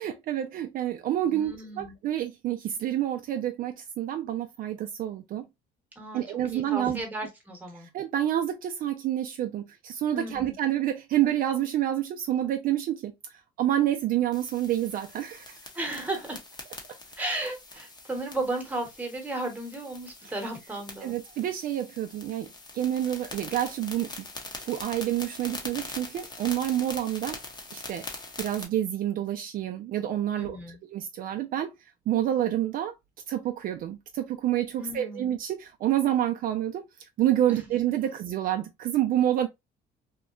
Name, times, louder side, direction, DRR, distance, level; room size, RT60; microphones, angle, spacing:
voice 1, 0.0-5.4 6.1-7.0 7.8-15.6 21.0-22.5 22.7-24.1 24.7-27.4 27.7-28.1 28.4-30.6 30.9-31.7 32.1-32.9 33.3-36.8 37.2-39.5, right 12 dB, 55° right, 0.4 m, -28 dB
voice 2, 1.2-1.9 6.0-6.2 6.5-7.9 10.1-10.5 15.7-16.4 17.2-21.2 30.4-30.8 34.8-35.3 37.5-37.7, right 2 dB, 10° right, 1.0 m, -34 dB
sound 1, 14.3-28.6, left 2 dB, 25° left, 0.7 m, -43 dB
2.8 x 2.1 x 2.3 m
cardioid pair, 110°, 17 cm